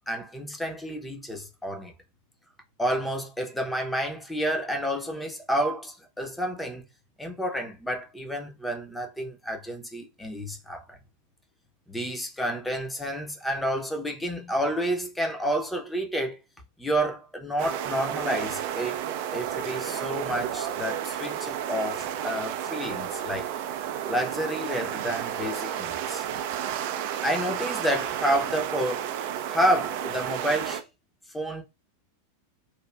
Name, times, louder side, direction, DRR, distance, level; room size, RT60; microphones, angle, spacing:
voice 1, 0.1-1.9 2.8-6.8 7.2-11.0 11.9-16.4 16.8-19.0 19.3-23.5 24.1-26.3 27.2-29.1 29.5-30.9 31.3-31.6, right 1 dB, 5° left, 0.7 m, -29 dB
sound 1, 17.6-30.8, right 10 dB, 45° right, 0.4 m, -32 dB
3.1 x 2.4 x 2.3 m
figure-of-eight pair, 90°, 0 cm